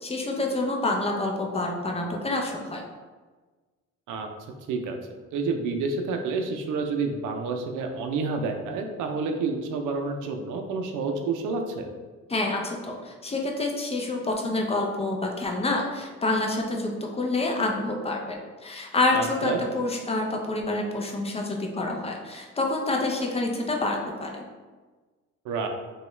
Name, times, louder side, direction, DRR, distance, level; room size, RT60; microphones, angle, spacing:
voice 1, 0.0-2.8 12.3-24.5, left 2 dB, 20° left, 1 dB, 0.5 m, -27 dB
voice 2, 5.3-11.9 19.1-19.6 25.4-25.7, right 4 dB, 85° right, 4 dB, 0.5 m, -29 dB
2.9 x 2.3 x 3.1 m, 1.3 s
cardioid pair, 90°, 30 cm